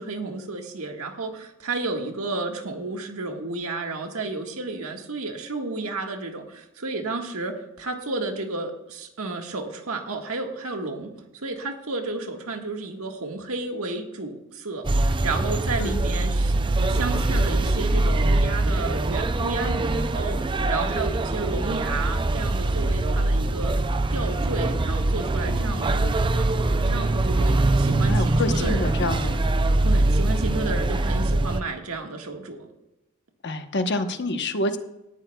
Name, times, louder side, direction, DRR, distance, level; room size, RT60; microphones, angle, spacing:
voice 1, 0.0-20.4 20.7-23.7 24.1-28.9 29.8-32.7, right 3 dB, 90° right, 3 dB, 1.7 m, -32 dB
sound 1, 14.8-31.6, right 2 dB, 25° right, 0.4 m, -23 dB
voice 2, 25.5-26.0 28.0-29.5 33.4-34.8, left 2 dB, 55° left, 6 dB, 1.1 m, -28 dB
18.5 x 13.5 x 2.3 m, 0.97 s
head